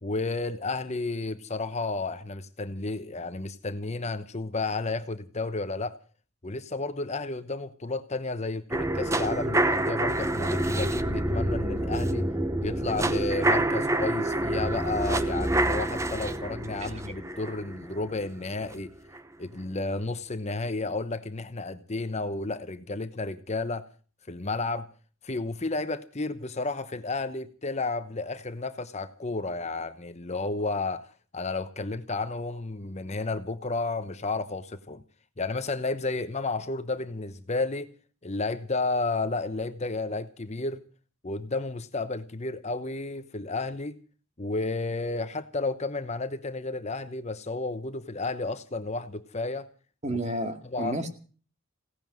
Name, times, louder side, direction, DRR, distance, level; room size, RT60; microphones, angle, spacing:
voice 1, 0.0-6.0 6.4-12.3 12.6-18.9 19.4-23.9 24.3-24.9 25.2-35.0 35.4-37.9 38.2-40.8 41.2-44.0 44.4-49.7 50.1-50.4 50.7-51.0, left 3 dB, 30° left, 0.9 m, -32 dB
sound 1, 8.7-18.7 19.1-19.2, right 1 dB, 15° right, 0.8 m, -27 dB
voice 2, 50.0-51.1, right 1 dB, 30° right, 2.2 m, -31 dB
17.0 x 10.5 x 7.7 m
head